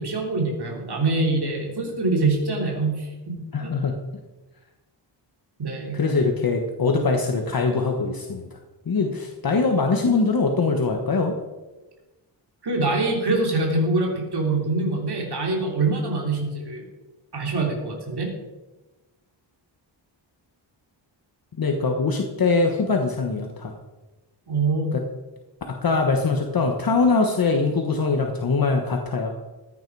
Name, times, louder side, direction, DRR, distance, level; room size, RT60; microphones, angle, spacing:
voice 1, 0.0-3.7 5.6-6.0 12.6-16.8 17.3-18.3 24.5-24.9, right 3 dB, 60° right, 0 dB, 3.1 m, -24 dB
voice 2, 3.5-3.9 5.9-8.5 8.9-11.3 21.6-23.7 24.9-25.0 25.8-29.3, left 4 dB, 50° left, 3 dB, 1.3 m, -22 dB
14.5 x 9.6 x 4.8 m, 1.1 s
wide cardioid pair, 130°, 45 cm